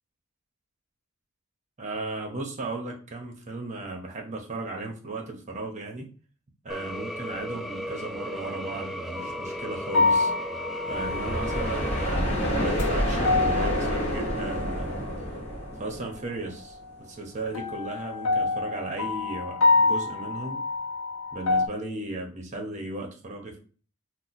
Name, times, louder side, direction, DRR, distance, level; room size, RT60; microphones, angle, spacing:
voice 1, 1.8-6.1 6.6-10.3 10.9-15.0 15.8-20.6 21.3-23.6, right 2 dB, 35° right, 2 dB, 0.7 m, -36 dB
sound 1, 6.7-12.1, equal, ahead, 0.3 m, -35 dB
sound 2, 9.2-9.5 9.9-11.8 12.2-15.1 17.5-21.7, left 3 dB, 65° left, 0.6 m, -27 dB
sound 3, 10.9-16.6, equal, 30° left, 1.3 m, -28 dB
2.8 x 2.1 x 4.0 m, 0.39 s
head